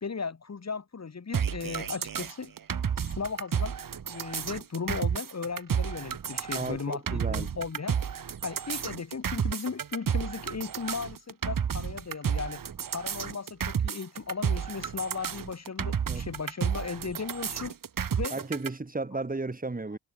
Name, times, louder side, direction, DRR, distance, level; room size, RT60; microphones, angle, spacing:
voice 1, 0.0-2.5 3.0-3.8 4.1-8.0 8.4-12.6 12.9-17.7 18.1-18.4 19.1-19.2, left 5 dB, 50° left, 3.4 m, -36 dB
sound 1, 1.3-18.7, right 7 dB, 75° right, 2.0 m, -31 dB
voice 2, 6.5-7.5 16.1-16.2 18.3-20.0, right 3 dB, 25° right, 3.4 m, -34 dB
wide cardioid pair, 105°, 33 cm